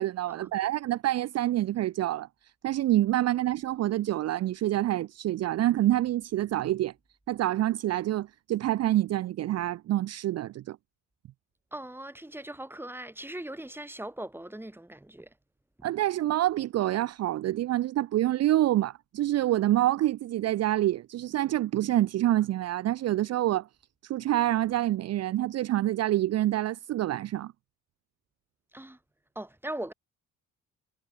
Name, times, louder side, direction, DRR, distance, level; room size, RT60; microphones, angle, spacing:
voice 1, 0.0-2.3 2.6-6.9 7.3-10.8 15.8-23.7 24.0-27.5, right 14 dB, 55° right, 0.5 m, -27 dB
voice 2, 11.7-15.3 15.8-15.9 28.7-29.0 29.4-29.9, right 1 dB, 5° right, 2.4 m, -40 dB
cardioid pair, 90°, 30 cm